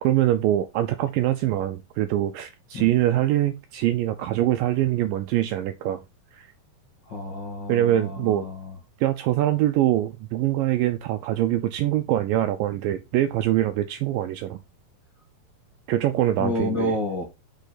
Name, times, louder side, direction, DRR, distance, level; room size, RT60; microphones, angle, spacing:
voice 1, 0.0-6.0 6.3-6.5 7.7-8.5 9.0-14.6 15.9-17.0, right 13 dB, 90° right, 2.0 m, -23 dB
voice 2, 7.1-8.6 16.4-17.2, left 1 dB, 40° left, 1.7 m, -29 dB
6.3 x 5.3 x 4.1 m
omnidirectional pair, 4.6 m